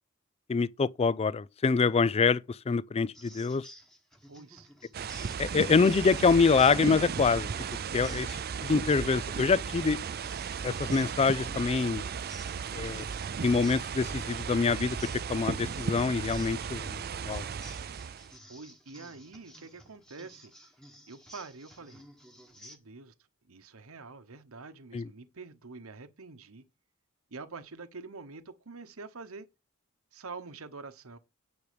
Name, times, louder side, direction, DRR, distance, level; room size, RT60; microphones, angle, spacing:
voice 1, 0.5-3.7 5.4-7.5 7.9-8.3 8.6-10.0 10.6-12.0 12.7-13.1 13.4-15.0 15.3-17.0 17.2-17.4 24.9-25.1, left 4 dB, 30° left, 0.4 m, -25 dB
sound 1, 3.1-22.8, equal, 5° left, 1.4 m, -54 dB
voice 2, 4.3-4.7 7.8-8.2 16.2-16.6 18.5-20.5 21.1-22.0 22.5-23.1 23.5-26.6 27.3-29.5 30.1-31.2, right 4 dB, 70° right, 1.1 m, -46 dB
sound 2, 4.9-18.4, right 6 dB, 45° right, 0.5 m, -35 dB
9.6 x 5.0 x 5.1 m
head